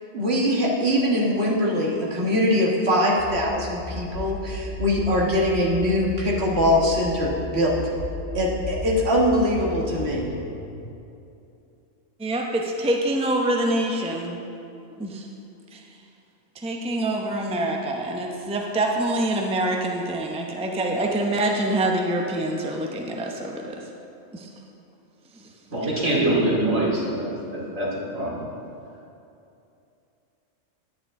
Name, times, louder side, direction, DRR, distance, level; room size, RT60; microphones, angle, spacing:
voice 1, 0.1-7.8 8.3-10.3, equal, 55° right, -4 dB, 1.8 m, -22 dB
sound 1, 3.2-10.8, left 2 dB, 55° left, 1.0 m, -35 dB
voice 2, 12.2-14.4 15.0-15.3 15.7-15.8 16.6-23.8 24.3-24.5 25.4-25.5, right 1 dB, 5° right, 1 dB, 0.6 m, -25 dB
voice 3, 25.7-28.4, right 1 dB, 80° right, -7 dB, 2.9 m, -24 dB
11.0 x 9.3 x 3.7 m, 2.7 s
omnidirectional pair, 1.3 m